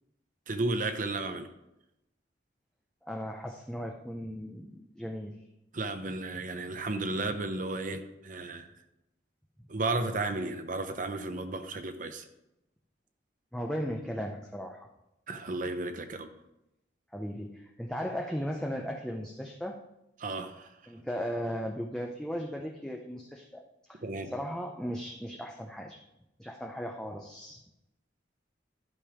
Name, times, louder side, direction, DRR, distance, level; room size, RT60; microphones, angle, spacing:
voice 1, 0.5-1.5 5.7-8.7 9.7-12.2 15.3-16.3 20.2-20.7 24.0-24.3, right 2 dB, 45° right, 8 dB, 0.7 m, -33 dB
voice 2, 3.0-5.4 13.5-14.9 17.1-19.8 20.9-23.6 23.9-26.0 26.4-27.6, equal, 5° left, 1 dB, 0.6 m, -37 dB
11.5 x 5.3 x 5.0 m, 0.87 s
head